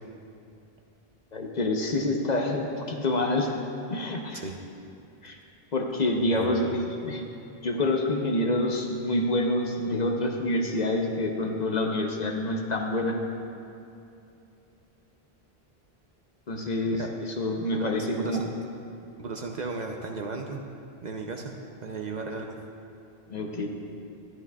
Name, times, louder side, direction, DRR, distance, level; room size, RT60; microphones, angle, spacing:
voice 1, 1.3-3.5 3.9-4.4 5.2-5.4 5.7-7.2 7.6-13.1 16.5-18.4 23.3-23.7, left 1 dB, 45° left, 2 dB, 0.8 m, -27 dB
voice 2, 6.3-6.8 17.0-17.1 17.7-17.9 18.2-18.5 19.2-20.6 21.0-21.6 21.8-22.6, right 4 dB, 50° right, 2 dB, 0.6 m, -35 dB
12.5 x 10.5 x 2.3 m, 2.7 s
omnidirectional pair, 1.0 m